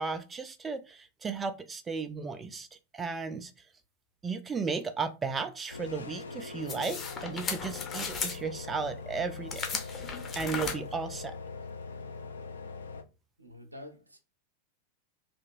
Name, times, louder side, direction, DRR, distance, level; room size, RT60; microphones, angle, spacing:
voice 1, 0.0-2.7 2.9-3.5 4.2-11.3, right 5 dB, 15° right, 0.3 m, -35 dB
sound 1, 5.7-13.0, left 4 dB, 70° left, 0.4 m, -42 dB
sound 2, 6.7-8.4 9.5-10.7, left 5 dB, 25° left, 0.7 m, -36 dB
voice 2, 13.4-14.2, left 1 dB, 85° right, 0.6 m, -47 dB
2.9 x 2.8 x 2.5 m
figure-of-eight pair, 90°, 0 cm